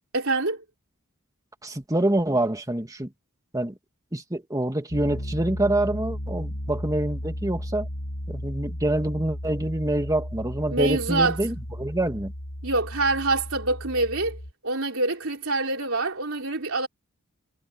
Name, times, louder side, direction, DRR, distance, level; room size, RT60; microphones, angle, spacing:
voice 1, 0.1-0.6 10.7-11.4 12.6-14.4 14.6-16.9, right 2 dB, 70° right, 4.3 m, -25 dB
voice 2, 1.6-3.1 3.5-3.8 4.1-7.9 8.3-12.3, right 1 dB, 15° right, 2.1 m, -26 dB
Piano, 4.9-14.5, equal, 85° left, 4.1 m, -34 dB
head